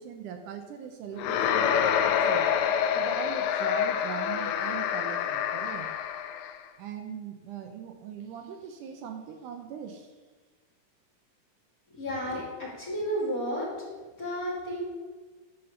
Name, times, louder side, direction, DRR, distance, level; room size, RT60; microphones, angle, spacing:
voice 1, 0.0-2.5 2.9-5.9 6.8-10.1, right 7 dB, 80° right, 5 dB, 1.9 m, -40 dB
sound 1, 1.2-6.6, left 8 dB, 80° left, 2.0 m, -27 dB
voice 2, 11.9-13.7 14.2-14.8, equal, 25° left, -7 dB, 2.4 m, -32 dB
11.5 x 4.2 x 6.5 m, 1.3 s
omnidirectional pair, 4.3 m